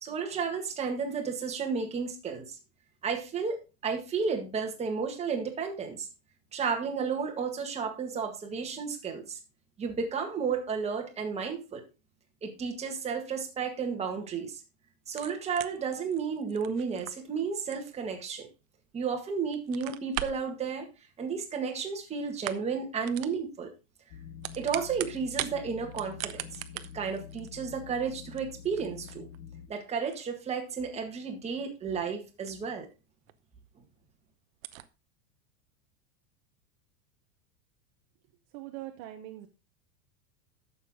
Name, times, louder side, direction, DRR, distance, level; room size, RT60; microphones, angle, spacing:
voice 1, 0.0-2.6 3.0-6.1 6.5-9.4 9.8-11.8 12.4-14.6 15.1-18.5 18.9-20.9 21.2-23.7 24.6-26.4 26.9-29.3 29.7-32.9, right 5 dB, 15° right, 2 dB, 1.8 m, -32 dB
sound 1, 15.1-19.1 19.5-20.5 21.6-22.0 22.3-22.8 23.0-23.4 24.2-25.6 25.9-32.9 33.3-33.4 33.8-33.9 34.1-34.2 34.5-34.9, right 14 dB, 75° right, 0.9 m, -41 dB
sound 2, 24.1-29.7, left 7 dB, 45° left, 1.0 m, -47 dB
voice 2, 38.5-39.5, right 14 dB, 45° right, 6 dB, 1.1 m, -42 dB
11.0 x 7.0 x 3.7 m, 0.29 s
supercardioid pair, 160°, 41 cm